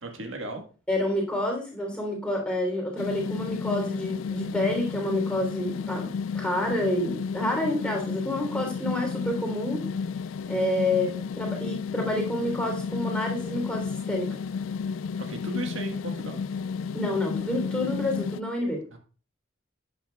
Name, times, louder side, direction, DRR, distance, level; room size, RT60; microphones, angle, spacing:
voice 1, 0.0-0.6 15.2-16.4 18.9-19.0, right 1 dB, 85° right, 4 dB, 1.6 m, -35 dB
voice 2, 0.9-6.1 6.3-9.9 10.5-14.4 16.9-18.8, left 1 dB, 5° left, -1 dB, 3.3 m, -28 dB
sound 1, 3.0-18.4, left 5 dB, 85° left, 0.3 m, -32 dB
11.5 x 8.5 x 2.3 m, 0.37 s
head